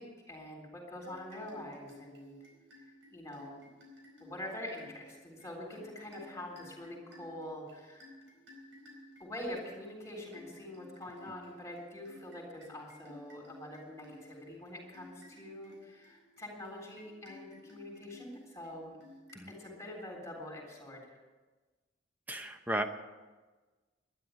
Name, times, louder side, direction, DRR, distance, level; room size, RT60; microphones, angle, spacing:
voice 1, 0.0-2.4 2.8-3.7 4.2-8.1 9.2-19.0 19.5-21.2, left 1 dB, 15° left, -1 dB, 3.7 m, -45 dB
sound 1, 1.0-20.2, left 1 dB, 85° right, 4.5 m, -57 dB
voice 2, 22.3-22.9, right 1 dB, 10° right, 6 dB, 0.8 m, -34 dB
12.0 x 11.0 x 9.2 m, 1.3 s
head